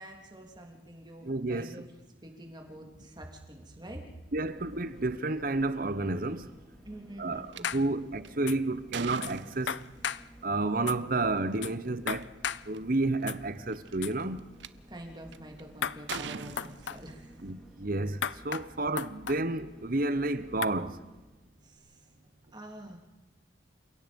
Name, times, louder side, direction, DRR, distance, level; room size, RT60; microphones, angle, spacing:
voice 1, 0.0-1.8 2.2-4.1 6.9-8.0 14.9-17.4 21.6-22.1 22.5-23.0, right 1 dB, 25° right, 3.3 m, -47 dB
voice 2, 1.2-1.8 4.3-6.5 7.2-9.8 10.4-12.3 12.6-14.4 17.4-21.0, right 2 dB, 45° right, 1.0 m, -31 dB
sound 1, 4.1-21.4 21.8-21.9, right 1 dB, 5° left, 3.9 m, -54 dB
sound 2, 7.5-7.6 8.2-10.1 11.4-11.6 12.2-12.3 12.5-13.0 13.7-14.7 15.3-15.6 16.1-17.5, right 6 dB, 70° right, 0.7 m, -41 dB
sound 3, 7.6-7.8 8.5-8.6 9.2-9.3 9.7-10.2 10.9-11.0 11.6-11.7 12.1-12.6 13.3-13.4 14.0-14.1 15.8-16.2 16.6-17.0 18.2-18.6 19.0-19.4 20.6-20.7, left 8 dB, 70° left, 0.6 m, -34 dB
29.5 x 17.0 x 5.4 m
head